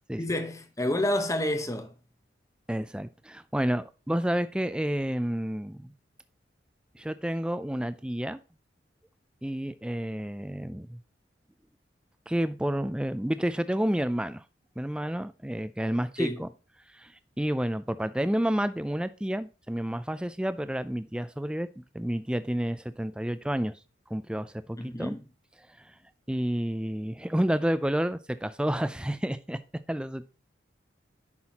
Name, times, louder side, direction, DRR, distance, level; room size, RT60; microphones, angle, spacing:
voice 1, 0.2-1.9 16.2-16.4 24.8-25.2, left 1 dB, 15° left, 0.8 m, -29 dB
voice 2, 2.7-5.9 7.0-8.4 9.4-11.0 12.3-14.4 14.8-16.5 16.9-17.1 17.4-23.7 24.1-25.2 26.3-29.6 29.9-30.2, right 1 dB, 5° right, 0.3 m, -30 dB
9.5 x 6.1 x 2.9 m
head